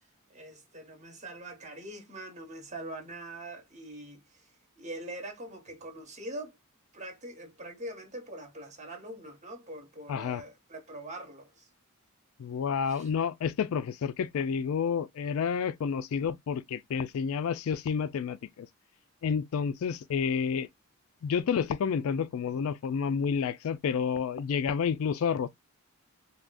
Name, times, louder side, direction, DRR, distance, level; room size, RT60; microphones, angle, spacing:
voice 1, 0.3-4.4 4.8-6.6 6.9-11.7 12.9-13.1, right 1 dB, 35° right, 0.9 m, -43 dB
voice 2, 10.1-10.4 12.4-18.7 19.2-20.7 21.2-25.5, left 6 dB, 70° left, 0.3 m, -30 dB
3.4 x 2.2 x 2.5 m
head